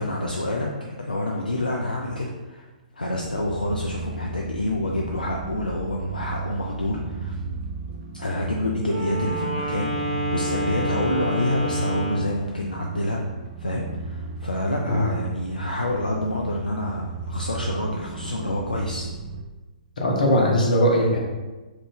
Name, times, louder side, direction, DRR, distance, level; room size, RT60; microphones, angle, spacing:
voice 1, 0.0-2.7 2.9-7.4 8.1-13.2 13.6-19.1, left 1 dB, 80° left, -1 dB, 0.4 m, -28 dB
sound 1, 3.1-19.4, right 4 dB, 40° right, 0.4 m, -34 dB
Wind instrument woodwind instrument, 8.8-12.4, equal, 65° right, 1.4 m, -29 dB
voice 2, 20.0-21.2, equal, 65° left, -1 dB, 0.8 m, -19 dB
3.1 x 2.6 x 3.4 m, 1.2 s
figure-of-eight pair, 120°, 5 cm